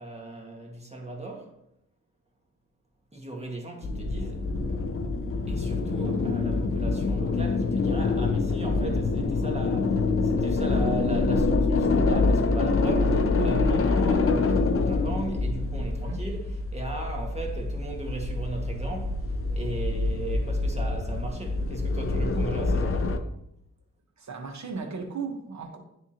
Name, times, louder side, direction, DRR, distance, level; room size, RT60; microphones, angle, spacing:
voice 1, 0.0-1.5 3.1-4.5 5.5-23.2, right 2 dB, 20° right, 1.7 m, -37 dB
sound 1, 3.8-23.2, left 3 dB, 40° left, 0.6 m, -26 dB
voice 2, 24.2-25.8, right 5 dB, 55° right, 1.3 m, -35 dB
10.5 x 3.6 x 2.9 m
cardioid pair, 55°, 34 cm